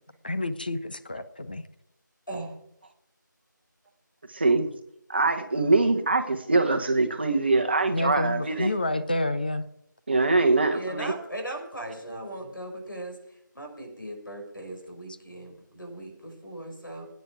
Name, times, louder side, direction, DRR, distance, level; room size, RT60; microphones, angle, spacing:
voice 1, 0.2-1.6 7.9-9.7, left 1 dB, 25° left, 9 dB, 0.7 m, -29 dB
voice 2, 2.3-2.6 8.4-8.7 10.7-17.1, right 1 dB, 80° left, 4 dB, 5.8 m, -38 dB
voice 3, 4.3-4.7 5.1-8.7 10.1-11.1, right 3 dB, 30° right, 7 dB, 1.3 m, -23 dB
18.0 x 9.3 x 4.8 m, 0.78 s
figure-of-eight pair, 170°, 11 cm